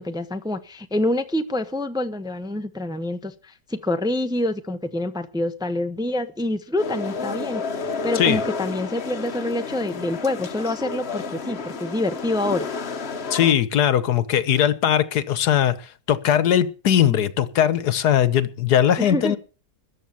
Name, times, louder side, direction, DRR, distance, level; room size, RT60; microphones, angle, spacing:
voice 1, 0.0-12.7 19.0-19.4, left 1 dB, 5° right, 0.8 m, -26 dB
sound 1, 6.8-13.5, left 4 dB, 45° left, 1.3 m, -31 dB
voice 2, 13.3-19.4, left 10 dB, 80° left, 1.6 m, -20 dB
14.0 x 9.1 x 7.1 m
omnidirectional pair, 1.7 m